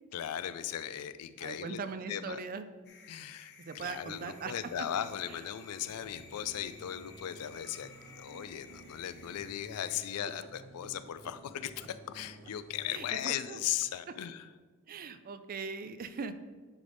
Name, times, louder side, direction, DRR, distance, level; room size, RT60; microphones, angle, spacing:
voice 1, 0.1-1.8 2.1-2.4 3.1-14.5, left 10 dB, 85° left, 13 dB, 0.4 m, -38 dB
voice 2, 1.4-2.7 3.6-4.9 5.3-5.4 12.9-13.6 14.9-16.3, right 5 dB, 40° right, 11 dB, 0.4 m, -40 dB
sound 1, 2.8-10.0, left 5 dB, 50° left, 0.8 m, -56 dB
sound 2, 4.1-13.0, right 1 dB, 55° right, 0.8 m, -54 dB
9.8 x 3.9 x 3.5 m, 1.5 s
head